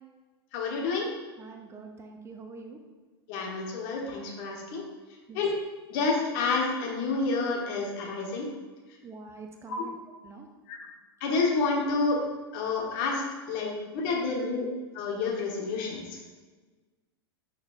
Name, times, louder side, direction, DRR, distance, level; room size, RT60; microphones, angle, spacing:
voice 1, 0.5-1.1 3.3-4.8 5.3-5.5 5.9-8.5 9.7-9.8 10.7-10.8 11.2-12.2 12.5-14.7 14.9-16.0, left 4 dB, 50° left, -1 dB, 1.5 m, -29 dB
voice 2, 1.4-2.8 5.3-5.4 9.0-9.9 10.2-10.5, right 4 dB, 20° right, 3 dB, 0.6 m, -45 dB
6.4 x 5.8 x 2.6 m, 1.3 s
hypercardioid pair, 95°, 14 cm